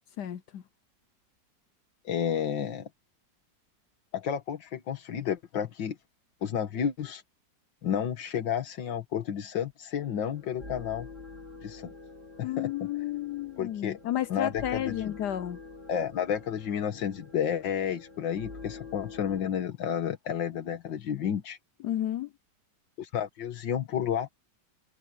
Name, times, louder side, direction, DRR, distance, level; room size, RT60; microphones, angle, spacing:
voice 1, 0.2-0.6 12.4-15.6 21.8-22.3, left 12 dB, 70° left, 1.2 m, -32 dB
voice 2, 2.1-2.9 4.1-6.0 6.4-7.2 7.8-11.1 11.6-11.9 12.4-12.7 13.6-14.0 14.3-15.1 15.9-21.6 23.0-24.3, left 8 dB, 90° left, 2.1 m, -31 dB
sound 1, 9.9-19.4, left 3 dB, 40° right, 4.7 m, -47 dB
omnidirectional pair, 2.0 m